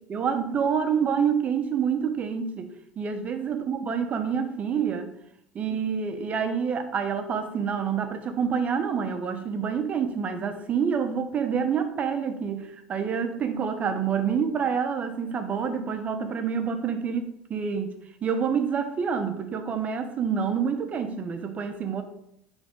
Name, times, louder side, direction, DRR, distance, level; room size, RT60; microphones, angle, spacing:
voice 1, 0.1-2.7 3.0-5.1 5.5-17.9 18.2-22.0, right 6 dB, 40° right, 8 dB, 1.0 m, -27 dB
9.6 x 3.6 x 3.9 m, 0.76 s
hypercardioid pair, 70°, 4 cm